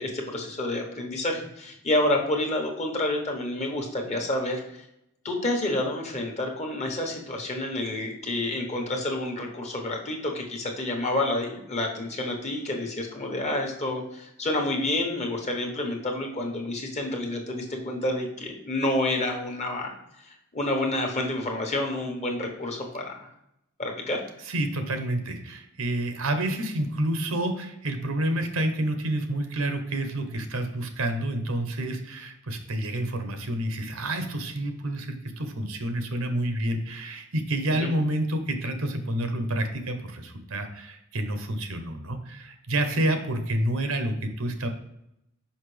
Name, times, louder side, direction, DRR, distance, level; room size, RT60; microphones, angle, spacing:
voice 1, 0.0-4.6 5.2-23.3 23.8-24.2 37.7-37.9, left 1 dB, 35° left, 1 dB, 1.2 m, -29 dB
voice 2, 24.5-44.7, right 1 dB, 80° right, 7 dB, 0.9 m, -29 dB
5.7 x 5.3 x 3.3 m, 0.82 s
head